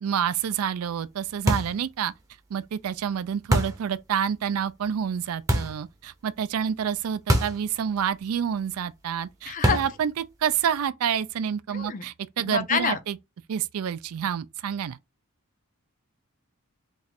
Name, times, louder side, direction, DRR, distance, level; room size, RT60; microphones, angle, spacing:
voice 1, 0.0-2.1 2.5-13.2 13.5-15.0, right 8 dB, 70° right, 0.4 m, -28 dB
sound 1, 1.5-1.8 3.5-3.9 5.5-5.8 7.3-7.6 7.9-8.0 9.6-10.0, right 1 dB, 15° right, 0.6 m, -24 dB
voice 2, 9.5-9.8 11.7-12.0 12.4-13.0, left 6 dB, 35° left, 0.4 m, -27 dB
3.1 x 2.4 x 4.2 m
head